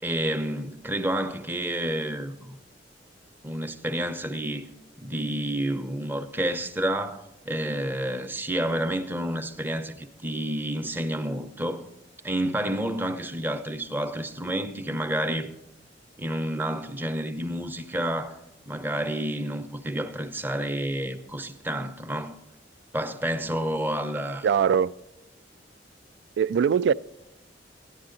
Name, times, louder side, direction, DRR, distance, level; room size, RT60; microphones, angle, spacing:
voice 1, 0.0-2.6 3.4-4.7 5.0-11.9 12.2-15.5 16.2-18.4 18.7-22.4 22.9-24.5, right 1 dB, 10° right, 0.7 m, -29 dB
voice 2, 24.4-24.9 26.4-26.9, right 7 dB, 70° right, 0.3 m, -21 dB
13.5 x 10.5 x 3.8 m
head